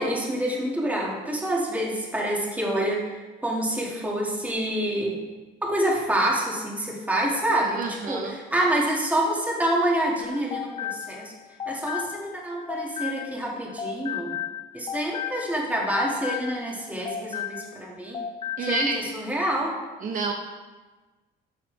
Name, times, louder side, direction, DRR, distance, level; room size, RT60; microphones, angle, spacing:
voice 1, 0.0-3.2 3.4-5.1 5.6-11.3 11.7-14.3 14.7-18.2 18.6-19.8, right 1 dB, 10° right, -3 dB, 2.3 m, -27 dB
voice 2, 7.6-8.4 18.6-19.0 20.0-20.3, right 4 dB, 50° right, 2 dB, 0.9 m, -29 dB
sound 1, 10.2-13.5 13.8-17.9 18.1-19.0, left 9 dB, 35° left, 0.5 m, -34 dB
12.0 x 7.1 x 3.5 m, 1.2 s
cardioid pair, 110°, 17 cm